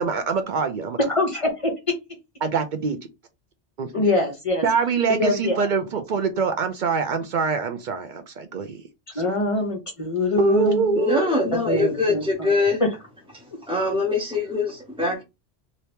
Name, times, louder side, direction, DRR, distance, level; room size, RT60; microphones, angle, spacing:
voice 1, 0.0-1.2 2.4-3.0 3.8-4.0 4.6-8.8 9.1-9.2 10.4-11.4, right 5 dB, 60° right, 0.5 m, -24 dB
voice 2, 1.1-1.7 3.9-4.6 5.2-5.7 9.1-11.0 11.7-12.5 12.8-12.9, left 2 dB, 35° left, 0.7 m, -24 dB
voice 3, 10.9-12.8 13.3-15.2, left 3 dB, 5° right, 0.7 m, -23 dB
2.8 x 2.7 x 3.3 m
omnidirectional pair, 1.1 m